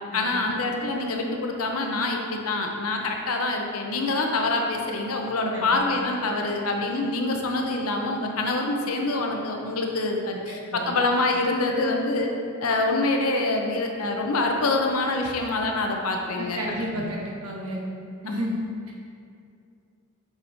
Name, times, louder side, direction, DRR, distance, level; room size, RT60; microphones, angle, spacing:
voice 1, 0.1-12.3 12.6-17.0 18.3-18.5, left 2 dB, 85° left, 2 dB, 0.7 m, -26 dB
voice 2, 10.5-10.9 16.6-17.8 18.2-18.6, right 1 dB, 90° right, -2 dB, 1.1 m, -32 dB
7.2 x 5.1 x 2.7 m, 2.4 s
head